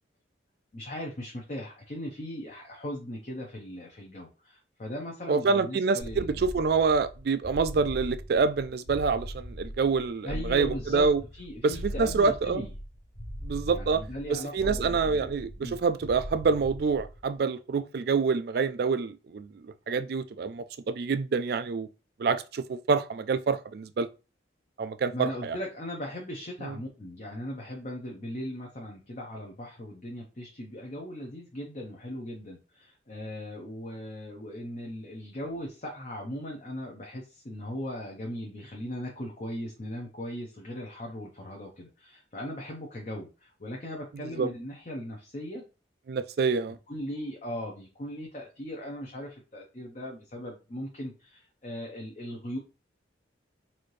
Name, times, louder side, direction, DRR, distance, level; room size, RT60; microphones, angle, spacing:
voice 1, 0.7-6.4 10.2-11.1 11.3-12.7 13.7-15.3 15.6-15.8 25.1-45.6 46.9-52.6, left 1 dB, 40° left, 0.7 m, -38 dB
voice 2, 5.3-11.2 11.6-12.7 13.4-14.0 14.3-21.9 22.2-24.1 24.8-25.6 26.6-26.7 44.4-44.5 46.1-46.8, right 4 dB, 55° right, 0.3 m, -27 dB
sound 1, 6.0-17.4, equal, 80° left, 1.4 m, -40 dB
4.2 x 2.6 x 3.1 m
head